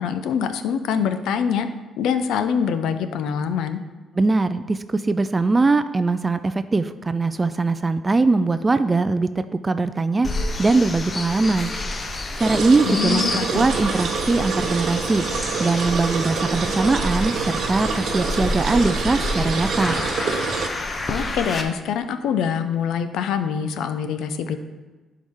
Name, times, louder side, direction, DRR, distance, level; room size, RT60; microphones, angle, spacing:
voice 1, 0.0-1.7 2.0-3.8 12.9-13.7 21.1-24.6, left 7 dB, 85° left, 9 dB, 0.6 m, -24 dB
voice 2, 4.1-10.3 10.6-11.7 12.4-13.2 13.5-15.2 15.6-20.0, right 3 dB, 25° right, 11 dB, 0.4 m, -21 dB
sound 1, 10.2-21.6, left 2 dB, 35° left, 0.8 m, -29 dB
sound 2, 12.4-20.7, right 5 dB, 65° right, 0.8 m, -27 dB
11.0 x 4.8 x 3.7 m, 1.2 s
cardioid pair, 90°, 0 cm